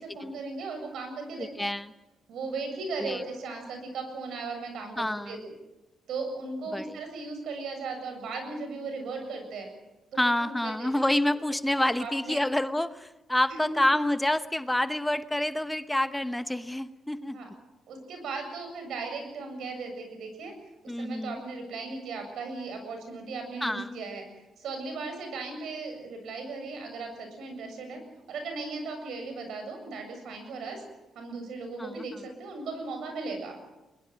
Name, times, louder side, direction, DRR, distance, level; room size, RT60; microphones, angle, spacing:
voice 1, 0.0-1.5 2.3-5.5 6.1-9.7 10.1-10.9 12.0-12.4 13.5-13.9 17.3-17.5 17.9-20.5 21.0-24.2 24.6-28.0 28.3-30.8 31.1-33.6, right 3 dB, 75° right, 5 dB, 7.4 m, -37 dB
voice 2, 1.4-1.9 3.0-3.2 5.0-5.4 6.7-7.0 10.2-17.4 20.9-21.4 23.6-23.9 31.8-32.0, left 1 dB, 10° left, 11 dB, 1.0 m, -28 dB
22.5 x 21.5 x 7.6 m, 1.0 s
supercardioid pair, 65°, 0 cm